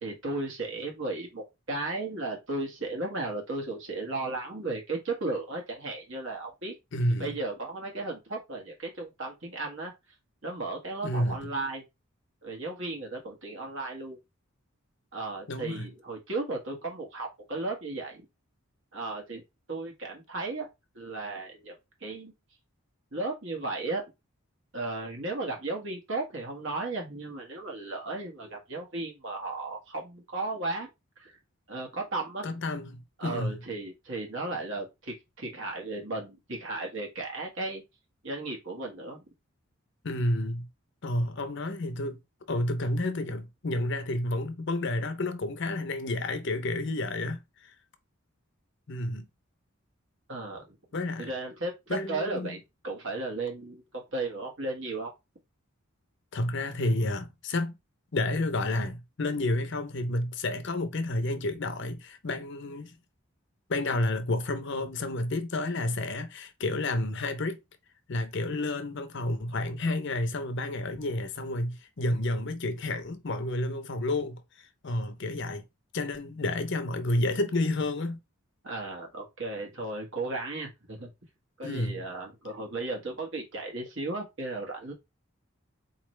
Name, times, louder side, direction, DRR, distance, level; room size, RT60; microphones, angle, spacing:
voice 1, 0.0-6.7 7.2-9.9 10.4-11.8 12.4-14.2 15.1-18.2 18.9-19.4 19.7-20.7 20.9-21.7 22.0-22.3 23.1-24.0 24.7-30.9 31.2-31.4 31.7-32.6 33.2-37.8 38.2-39.2 50.3-50.8 51.2-52.6 52.8-55.1 78.6-81.1 81.6-84.9, right 2 dB, 55° right, 1.5 m, -35 dB
voice 2, 6.9-7.3 11.0-11.4 15.5-15.9 32.4-33.5 40.0-40.7 41.0-42.2 42.5-47.7 48.9-49.3 50.9-51.3 51.9-52.6 56.3-57.7 58.1-62.9 63.7-67.6 68.1-75.6 75.9-78.2 81.6-82.0, left 2 dB, 55° left, 0.6 m, -30 dB
4.2 x 3.1 x 3.2 m
head